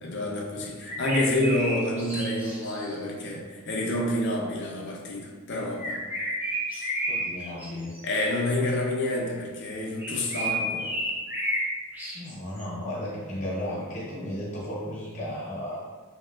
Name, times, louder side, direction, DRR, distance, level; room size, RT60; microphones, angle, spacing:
voice 1, 0.0-6.0 8.0-10.9, left 1 dB, 55° left, 0 dB, 0.4 m, -28 dB
sound 1, 0.8-3.0 5.8-7.7 7.9-8.2 10.0-11.7 11.9-12.6, right 1 dB, 10° right, 0.5 m, -31 dB
voice 2, 7.1-7.9 12.1-15.8, left 1 dB, 35° left, -6 dB, 0.9 m, -34 dB
3.3 x 2.8 x 2.2 m, 1.4 s
head